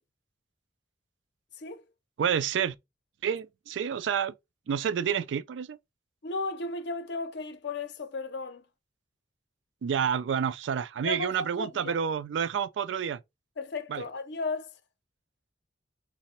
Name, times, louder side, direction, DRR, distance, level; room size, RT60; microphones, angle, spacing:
voice 1, 2.2-2.7 3.2-4.3 4.7-5.8 9.8-13.2 13.9-14.0, right 7 dB, 75° right, 0.3 m, -29 dB
voice 2, 6.2-8.6 11.0-12.0 13.6-14.7, left 3 dB, 65° left, 0.6 m, -35 dB
3.3 x 2.1 x 4.1 m
head